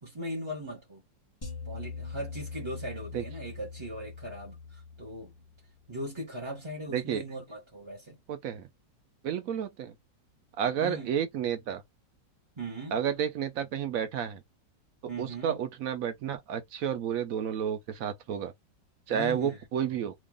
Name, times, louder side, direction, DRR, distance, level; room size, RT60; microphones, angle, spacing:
voice 1, 0.0-1.0 1.6-5.3 5.9-8.2 10.8-11.1 12.6-13.0 15.1-15.6 19.1-19.6, right 1 dB, 25° right, 0.7 m, -39 dB
sound 1, 1.4-5.7, left 5 dB, 35° left, 0.3 m, -42 dB
voice 2, 6.9-7.2 8.3-8.7 9.2-9.9 10.6-11.8 12.9-14.4 15.2-18.5 19.1-20.1, right 8 dB, 65° right, 0.9 m, -31 dB
3.1 x 2.4 x 3.6 m
omnidirectional pair, 2.0 m